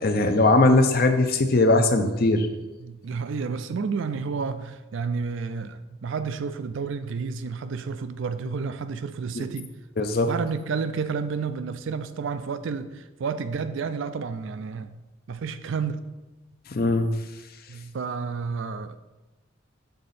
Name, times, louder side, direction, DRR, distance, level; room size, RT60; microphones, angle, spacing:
voice 1, 0.0-2.5 9.3-9.4 10.0-10.3 16.8-17.1, left 2 dB, 45° left, 7 dB, 0.5 m, -20 dB
voice 2, 2.6-9.7 10.3-15.0 15.3-16.0 17.7-19.0, right 5 dB, 65° right, 11 dB, 0.4 m, -31 dB
6.7 x 3.8 x 4.1 m, 1.1 s
head